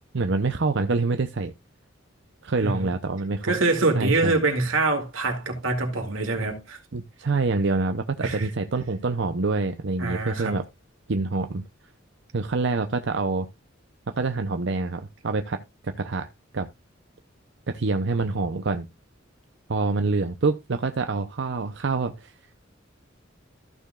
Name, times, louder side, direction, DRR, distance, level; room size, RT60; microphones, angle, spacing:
voice 1, 0.1-1.5 2.4-3.5 3.9-4.3 6.9-10.6 11.1-11.6 12.3-13.5 14.2-16.3 16.5-16.7 17.7-18.9 19.7-22.3, right 3 dB, 65° right, 0.7 m, -26 dB
voice 2, 3.4-6.8 8.2-8.5 10.0-10.6, right 3 dB, 90° right, 2.5 m, -25 dB
14.5 x 6.8 x 2.4 m
head